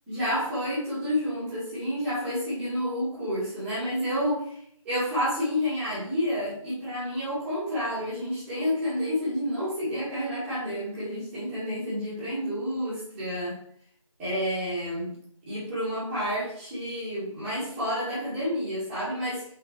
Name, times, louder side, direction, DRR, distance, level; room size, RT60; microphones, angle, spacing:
voice 1, 0.1-4.6 4.8-13.6 14.2-15.2 15.5-19.5, equal, 5° right, -12 dB, 1.8 m, -29 dB
6.6 x 5.7 x 3.2 m, 0.63 s
figure-of-eight pair, 165°, 17 cm